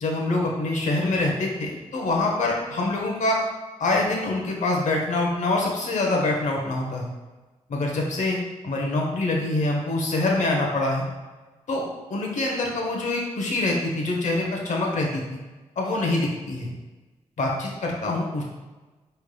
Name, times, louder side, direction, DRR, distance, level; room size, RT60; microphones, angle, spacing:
voice 1, 0.0-3.4 3.8-7.0 7.7-8.4 8.6-11.0 11.7-11.8 12.1-15.2 15.8-16.7 17.4-18.4, left 2 dB, 65° left, -1 dB, 0.9 m, -25 dB
4.4 x 3.2 x 2.2 m, 1.2 s
supercardioid pair, 50°, 13 cm